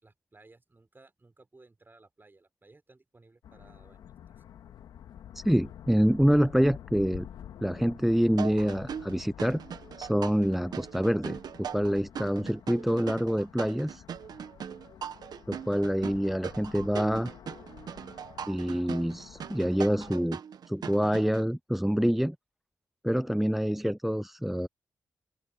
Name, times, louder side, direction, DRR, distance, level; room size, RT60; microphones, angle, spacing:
voice 1, 0.0-4.4, right 3 dB, 30° right, 4.9 m, -59 dB
sound 1, 3.4-20.2, left 10 dB, 85° left, 2.4 m, -49 dB
voice 2, 5.3-7.3 7.6-9.6 10.0-14.0 15.5-17.3 18.5-20.4 20.7-22.4 23.0-24.7, equal, 5° right, 0.3 m, -26 dB
sound 2, 8.4-21.4, right 8 dB, 70° right, 1.2 m, -40 dB
open air
supercardioid pair, 50°, 7 cm